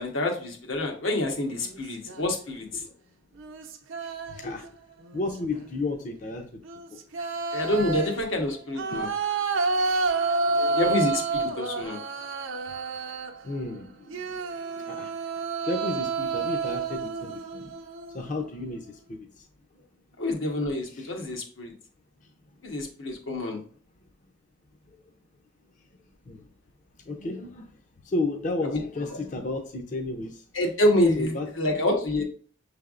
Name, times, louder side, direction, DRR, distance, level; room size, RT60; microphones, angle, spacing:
voice 1, 0.0-2.9 4.4-4.5 7.5-9.1 10.7-12.0 20.2-21.7 22.6-23.6 28.6-28.8 29.1-29.2 30.5-32.2, left 1 dB, 90° left, 1.2 m, -27 dB
sound 1, 1.6-2.4 3.4-4.7 5.0-5.6 6.6-13.5 14.1-18.4, right 3 dB, 85° right, 0.6 m, -30 dB
voice 2, 4.0-4.7 5.1-6.6 8.9-9.0 10.5-10.9 11.4-11.5 13.4-15.2 15.6-17.8 18.1-19.5 19.8-19.9 21.0-21.1 22.2-22.3 24.9-25.0 26.3-26.5 27.1-27.7 28.0-30.4 31.2-31.5, left 2 dB, 40° left, 0.5 m, -33 dB
6.1 x 3.3 x 2.4 m
head